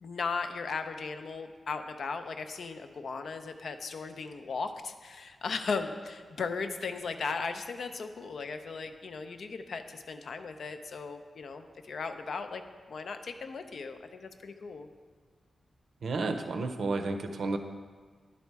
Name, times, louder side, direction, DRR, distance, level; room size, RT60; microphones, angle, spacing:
voice 1, 0.0-12.6 12.9-14.9, left 4 dB, 70° left, 8 dB, 0.5 m, -37 dB
voice 2, 16.0-17.6, right 3 dB, 75° right, 6 dB, 0.6 m, -31 dB
11.0 x 4.1 x 4.6 m, 1.6 s
wide cardioid pair, 150°, 0 cm